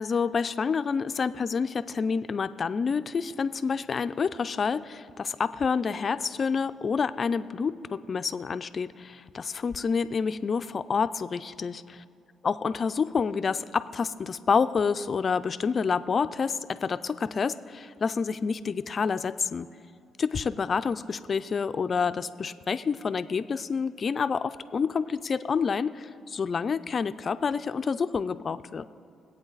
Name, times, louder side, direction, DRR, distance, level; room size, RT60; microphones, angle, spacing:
voice 1, 0.0-12.0 12.5-19.7 20.2-28.9, left 5 dB, 45° left, 12 dB, 0.4 m, -28 dB
21.5 x 8.5 x 4.0 m, 2.5 s
cardioid pair, 90°, 0 cm